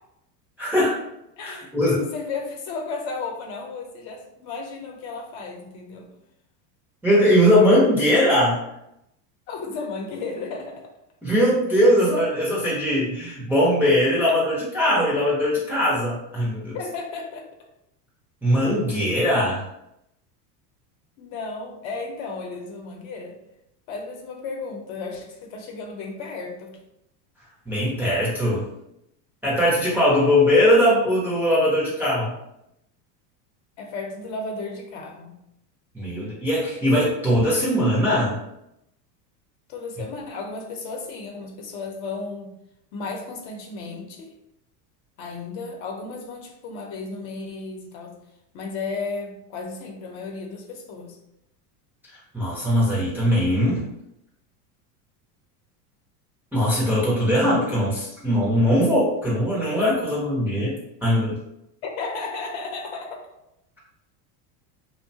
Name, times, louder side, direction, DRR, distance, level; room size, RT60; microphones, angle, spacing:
voice 1, 0.6-1.0 1.4-2.1 7.0-8.6 11.2-16.8 18.4-19.7 27.7-28.7 29.4-32.3 35.9-38.4 52.3-53.8 56.5-60.7 61.0-61.4, equal, 5° right, -8 dB, 0.5 m, -20 dB
voice 2, 1.4-6.1 9.5-10.9 16.7-17.5 21.2-23.4 23.9-26.7 33.8-35.4 39.7-42.6 42.9-44.3 45.2-48.2 48.5-51.2 61.8-63.3, left 4 dB, 60° left, 2 dB, 0.7 m, -34 dB
2.7 x 2.1 x 2.7 m, 0.83 s
supercardioid pair, 125°, 48 cm